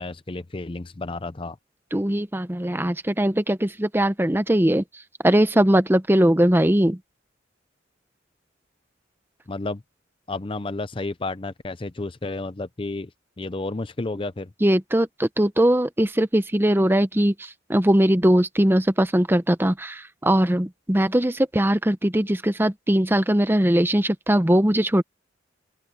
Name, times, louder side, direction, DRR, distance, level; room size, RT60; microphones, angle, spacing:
voice 1, 0.0-1.6 9.5-9.8 10.3-13.1 13.4-14.5, left 2 dB, 25° left, 0.6 m, -31 dB
voice 2, 1.9-4.8 5.2-7.0 14.6-25.0, right 1 dB, 10° right, 0.7 m, -20 dB
open air
head